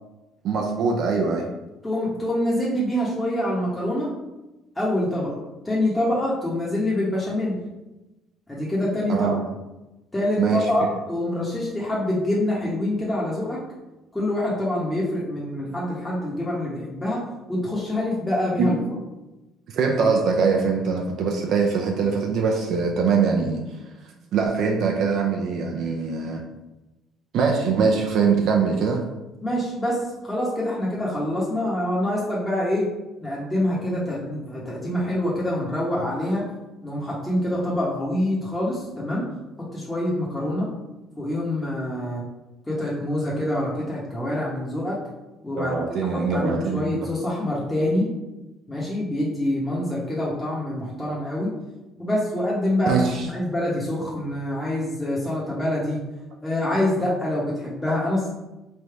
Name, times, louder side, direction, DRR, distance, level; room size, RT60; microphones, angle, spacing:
voice 1, 0.4-1.5 9.1-9.4 10.4-10.7 18.6-18.9 19.7-23.6 24.3-26.4 27.3-29.0 45.6-46.9 52.9-53.3, right 5 dB, 65° right, 1 dB, 0.5 m, -22 dB
voice 2, 1.8-4.1 4.8-5.4 5.6-7.6 8.5-9.3 10.1-13.6 14.1-17.2 17.5-18.8 29.4-32.9 33.2-36.4 36.8-39.2 39.7-40.7 41.2-42.2 42.7-45.0 45.4-45.8 46.1-48.1 48.7-51.5 52.0-56.0 56.4-58.3, left 1 dB, 10° left, -6 dB, 0.9 m, -25 dB
3.3 x 2.6 x 4.5 m, 1.0 s
cardioid pair, 115°, 0 cm